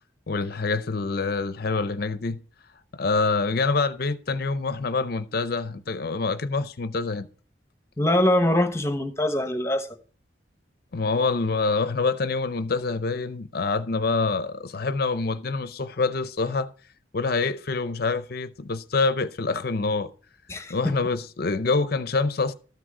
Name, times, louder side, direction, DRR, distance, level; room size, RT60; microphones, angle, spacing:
voice 1, 0.3-2.4 2.9-7.3 10.9-16.7 17.1-20.1 20.7-22.5, left 3 dB, 55° left, 0.6 m, -26 dB
voice 2, 8.0-9.9 20.5-20.9, left 1 dB, 15° left, 1.0 m, -23 dB
13.0 x 6.3 x 4.8 m
head